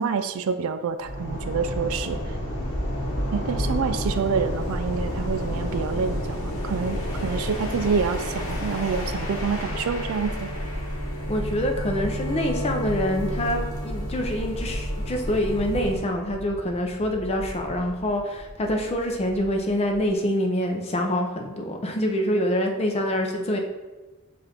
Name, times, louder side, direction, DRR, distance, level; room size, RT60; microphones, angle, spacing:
voice 1, 0.0-2.2 3.3-10.5, right 5 dB, 65° right, 9 dB, 0.3 m, -27 dB
sound 1, 1.0-16.0, equal, 70° left, 0.9 m, -30 dB
sound 2, 2.6-20.1, equal, 5° left, 1.4 m, -41 dB
voice 2, 11.3-23.6, equal, 25° left, 2 dB, 0.5 m, -26 dB
6.9 x 2.5 x 2.8 m, 1.2 s
head